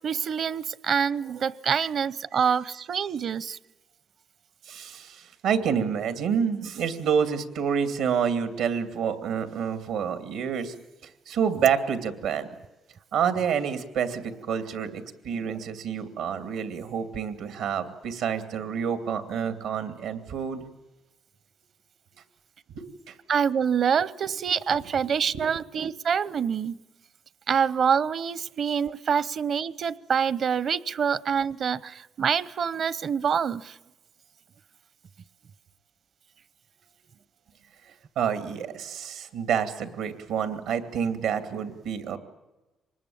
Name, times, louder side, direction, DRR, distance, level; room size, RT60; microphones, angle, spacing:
voice 1, 0.0-3.6 23.3-26.8 27.5-33.8, right 7 dB, 55° right, 20 dB, 0.8 m, -26 dB
voice 2, 4.6-10.7 11.3-12.5 13.1-20.6 22.7-23.2 25.3-25.4 38.2-42.2, right 7 dB, 90° right, 10 dB, 2.6 m, -28 dB
25.0 x 20.5 x 8.7 m, 1.1 s
cardioid pair, 90°, 0 cm